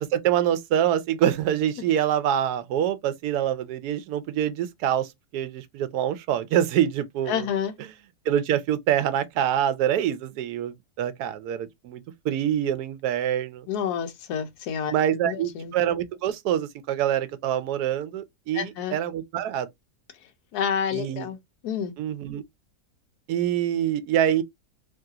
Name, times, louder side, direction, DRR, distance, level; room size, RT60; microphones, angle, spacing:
voice 1, 0.0-7.5 8.3-13.7 14.9-19.7 20.9-21.3 22.0-22.4 23.3-24.4, right 10 dB, 80° right, 1.1 m, -25 dB
voice 2, 7.3-7.7 13.7-14.9 15.2-15.7 18.5-18.9 20.5-21.4 21.6-21.9, left 8 dB, 85° left, 1.2 m, -28 dB
3.1 x 2.3 x 2.7 m
omnidirectional pair, 1.7 m